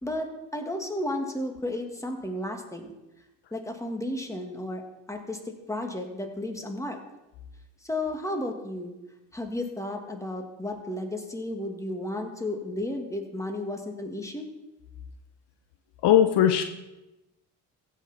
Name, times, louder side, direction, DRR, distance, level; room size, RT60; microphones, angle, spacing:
voice 1, 0.0-3.0 3.5-4.8 5.1-5.4 5.7-7.0 7.8-8.9 9.3-14.5, left 1 dB, 5° left, 3 dB, 2.0 m, -33 dB
voice 2, 16.0-16.6, left 10 dB, 60° left, 7 dB, 0.9 m, -19 dB
15.5 x 5.7 x 4.3 m, 0.99 s
hypercardioid pair, 60°, 45 cm